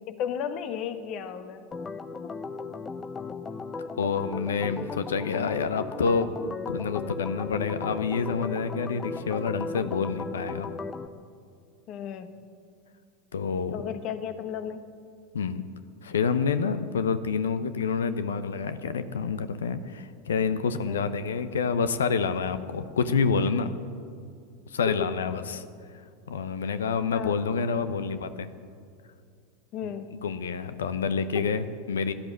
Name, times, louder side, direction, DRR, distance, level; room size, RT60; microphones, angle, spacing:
voice 1, 0.1-1.6 11.9-12.4 13.7-14.8 20.9-21.1 24.9-25.1 27.1-27.4 29.7-30.2 31.3-31.7, left 8 dB, 45° left, 10 dB, 1.2 m, -34 dB
Organ, 1.7-11.1, left 4 dB, 20° left, 0.8 m, -36 dB
voice 2, 3.9-6.3 6.7-10.7 13.3-13.7 15.3-15.6 16.0-23.7 24.7-25.6 26.3-28.5 29.8-29.9 30.2-32.1, left 5 dB, 75° left, 12 dB, 0.8 m, -28 dB
16.5 x 11.5 x 7.5 m, 2.3 s
hypercardioid pair, 85°, 0 cm